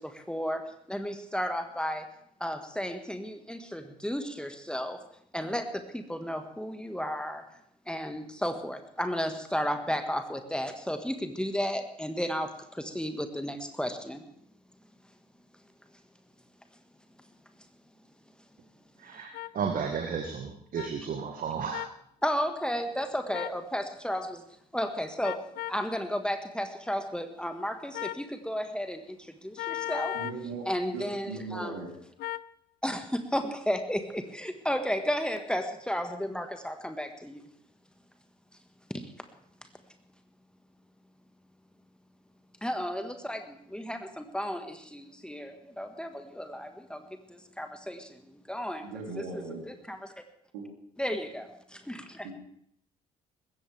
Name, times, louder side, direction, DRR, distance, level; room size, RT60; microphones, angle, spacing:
voice 1, 0.0-2.1 2.4-5.0 5.3-7.4 7.9-14.2 22.2-24.4 24.7-25.4 25.7-30.2 30.7-31.8 32.8-37.4 38.9-39.1 42.6-48.9 49.2-49.3 49.7-50.1 51.0-52.3, equal, 5° left, 7 dB, 1.7 m, -33 dB
voice 2, 19.0-21.9, right 6 dB, 45° right, 5 dB, 1.7 m, -33 dB
sound 1, 19.3-19.5 20.8-20.9 21.7-22.0 23.3-23.6 25.2-25.8 27.9-28.3 29.6-30.4 32.2-32.5, left 15 dB, 50° left, 0.5 m, -36 dB
voice 3, 30.1-30.7 30.9-31.9 48.8-49.6 50.5-50.7 52.2-52.3, right 4 dB, 65° right, 1 dB, 3.5 m, -38 dB
20.5 x 17.0 x 3.5 m, 0.70 s
figure-of-eight pair, 45°, 20 cm